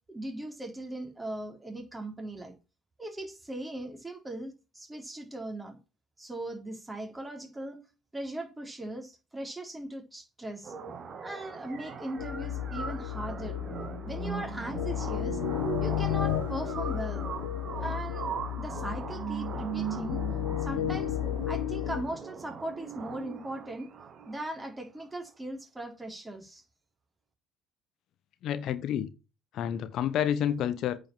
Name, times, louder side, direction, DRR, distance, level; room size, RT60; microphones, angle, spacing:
voice 1, 0.1-2.5 3.0-5.8 6.2-7.8 8.1-10.7 11.2-13.6 14.1-15.4 15.8-17.2 17.8-18.3 18.6-20.2 20.6-21.2 21.5-23.9 24.3-26.6, right 1 dB, 15° right, 3.9 m, -39 dB
sound 1, 10.6-24.6, right 7 dB, 45° right, 2.4 m, -39 dB
sound 2, 12.2-22.0, left 12 dB, 85° left, 1.2 m, -33 dB
voice 2, 28.4-29.1 29.5-31.0, left 10 dB, 60° left, 0.8 m, -29 dB
9.0 x 5.4 x 7.4 m
hypercardioid pair, 70°, 0 cm